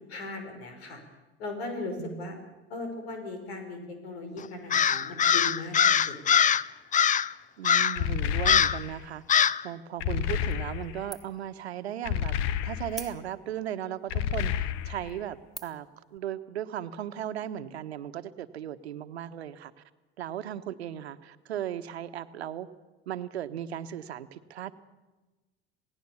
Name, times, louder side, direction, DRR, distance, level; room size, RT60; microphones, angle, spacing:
voice 1, 0.1-1.0 1.4-2.4 2.7-6.3, left 2 dB, 70° left, 6 dB, 6.0 m, -38 dB
voice 2, 2.0-2.4 7.6-19.8 20.2-22.7 23.1-24.7, right 10 dB, 75° right, 11 dB, 1.3 m, -37 dB
Crow, 4.7-6.6 6.9-7.3 7.6-8.0 8.4-8.8 9.3-9.6, left 8 dB, 25° left, 0.7 m, -22 dB
sound 1, 8.0-9.0 10.0-11.1 12.1-13.1 14.1-15.2, left 10 dB, 55° left, 1.1 m, -30 dB
sound 2, 10.5-10.9 11.1-11.5 11.9-12.0 12.9-13.6 14.2-14.3 14.9-15.1 15.5-15.9, right 1 dB, ahead, 2.8 m, -43 dB
27.5 x 18.5 x 7.1 m, 1.2 s
figure-of-eight pair, 70°, 32 cm